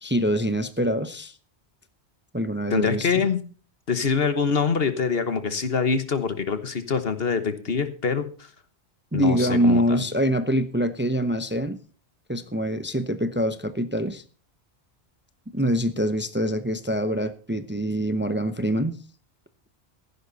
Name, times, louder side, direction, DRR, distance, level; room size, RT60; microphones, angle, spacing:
voice 1, 0.0-1.3 2.3-3.1 9.1-11.8 12.3-14.2 15.5-19.0, equal, 10° right, 11 dB, 0.7 m, -24 dB
voice 2, 2.7-3.4 3.9-8.2 9.1-10.0, left 5 dB, 65° left, 11 dB, 1.5 m, -24 dB
15.0 x 11.0 x 4.1 m, 0.39 s
omnidirectional pair, 1.1 m